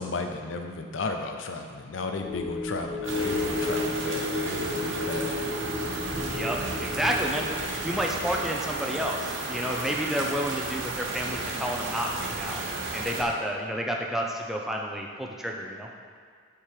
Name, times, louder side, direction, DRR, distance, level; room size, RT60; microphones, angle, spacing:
voice 1, 0.0-5.6, left 3 dB, 70° left, 5 dB, 0.6 m, -34 dB
sound 1, 2.1-12.7 13.1-13.2, left 3 dB, 30° left, 1.7 m, -35 dB
sound 2, 3.0-13.2, right 3 dB, 70° right, 0.9 m, -33 dB
voice 2, 6.3-7.6 7.8-12.6 12.9-15.9, equal, ahead, 0 dB, 0.6 m, -30 dB
7.0 x 3.8 x 4.8 m, 2.1 s
head